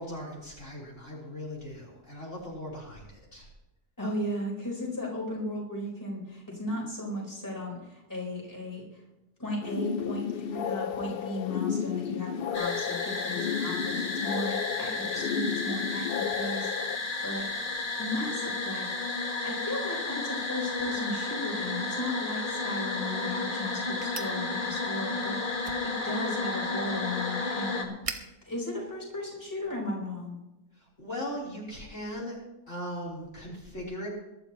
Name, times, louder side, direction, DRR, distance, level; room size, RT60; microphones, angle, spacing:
voice 1, 0.0-3.5 30.8-32.4 32.7-34.1, equal, 50° left, -4 dB, 4.0 m, -39 dB
voice 2, 4.0-8.8 9.4-16.7 17.2-17.5 18.0-18.8 19.4-25.4 25.8-27.9 28.5-30.4, left 1 dB, 10° left, -4 dB, 4.2 m, -35 dB
sound 1, 9.6-17.0, left 8 dB, 85° left, 0.5 m, -32 dB
sound 2, 12.5-27.8, left 3 dB, 35° left, 1.8 m, -32 dB
sound 3, 22.6-29.8, right 3 dB, 25° right, 0.9 m, -46 dB
22.5 x 12.0 x 3.0 m, 1.0 s
omnidirectional pair, 1.6 m